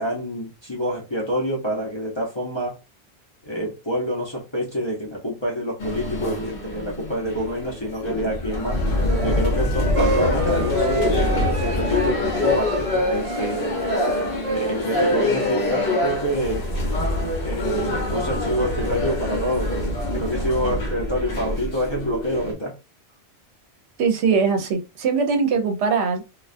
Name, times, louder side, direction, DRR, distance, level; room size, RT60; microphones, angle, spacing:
voice 1, 0.0-2.8 3.4-8.8 9.2-11.3 11.6-13.8 14.5-16.7 17.4-22.7, equal, 30° left, 0.6 m, -27 dB
sound 1, 5.8-22.5, left 2 dB, 60° left, 0.8 m, -24 dB
sound 2, 9.1-15.6, right 4 dB, 50° right, 0.4 m, -30 dB
voice 2, 24.0-26.2, right 5 dB, 75° right, 0.8 m, -21 dB
2.3 x 2.2 x 2.4 m
omnidirectional pair, 1.2 m